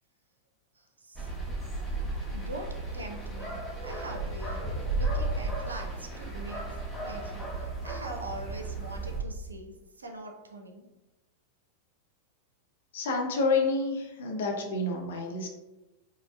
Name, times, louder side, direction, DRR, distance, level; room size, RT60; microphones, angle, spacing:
voice 1, 0.8-1.3 2.3-4.7 5.0-6.7 7.0-10.9, right 1 dB, 80° right, 3 dB, 0.5 m, -43 dB
sound 1, 1.2-9.2, right 2 dB, 5° left, 0.9 m, -34 dB
voice 2, 12.9-15.5, left 3 dB, 60° left, 3 dB, 0.6 m, -29 dB
4.8 x 2.1 x 2.3 m, 1.1 s
figure-of-eight pair, 90°, 0 cm